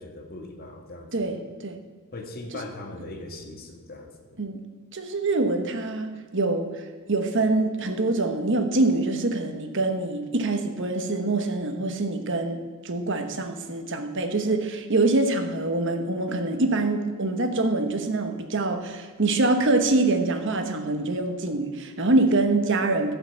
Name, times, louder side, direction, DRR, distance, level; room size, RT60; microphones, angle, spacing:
voice 1, 0.0-1.4 2.1-4.4, left 2 dB, 45° left, 3 dB, 1.7 m, -40 dB
voice 2, 1.1-1.8 2.5-2.6 4.4-4.6 4.9-6.7 7.1-23.1, right 2 dB, 55° right, 6 dB, 1.2 m, -25 dB
15.5 x 5.8 x 7.1 m, 1.5 s
head